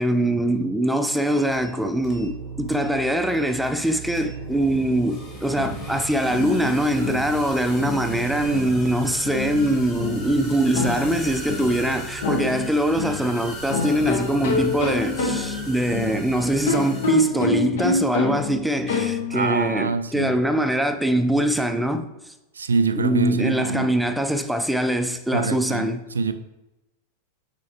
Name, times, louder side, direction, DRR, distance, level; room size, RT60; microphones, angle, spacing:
voice 1, 0.0-22.1 23.0-26.0, right 1 dB, ahead, 0.5 m, -23 dB
sound 1, 1.2-1.7 2.0-2.4 2.7-2.9 3.3-3.9 4.1-17.1, left 2 dB, 30° left, 2.2 m, -41 dB
sound 2, 1.5-16.8, right 7 dB, 40° right, 0.7 m, -39 dB
sound 3, 5.3-19.6, left 3 dB, 60° left, 0.7 m, -28 dB
voice 2, 19.3-20.4 22.5-23.9 25.3-25.9 26.1-26.3, right 4 dB, 75° right, 0.4 m, -25 dB
9.3 x 4.2 x 2.9 m
figure-of-eight pair, 90°, 0 cm